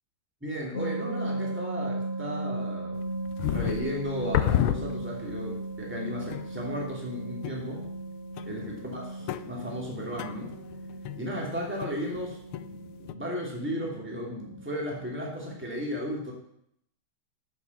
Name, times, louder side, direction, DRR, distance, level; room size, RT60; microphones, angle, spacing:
voice 1, 0.4-3.0 3.4-7.8 8.4-10.5 11.2-16.3, equal, 5° right, -2 dB, 2.8 m, -35 dB
sound 1, 0.7-15.6, right 2 dB, 35° left, 1.2 m, -37 dB
sound 2, 2.9-5.4 5.8-5.9 6.3-6.8 7.4-8.1 8.4-12.2 12.5-13.1, left 13 dB, 80° left, 1.5 m, -32 dB
9.8 x 7.5 x 7.2 m, 0.72 s
omnidirectional pair, 2.4 m